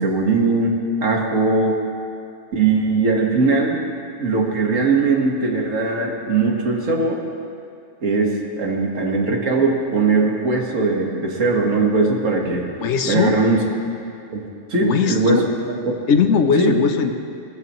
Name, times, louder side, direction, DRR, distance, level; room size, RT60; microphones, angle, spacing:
voice 1, 0.0-1.8 2.5-3.8 4.2-7.2 8.0-12.7 13.1-13.6 14.3-14.4 14.7-15.9 16.6-16.7, right 3 dB, 75° right, 0 dB, 2.0 m, -20 dB
voice 2, 12.8-13.4 14.8-15.4 16.1-17.1, left 6 dB, 65° left, 7 dB, 1.1 m, -18 dB
21.0 x 14.5 x 3.1 m, 2.5 s
omnidirectional pair, 1.3 m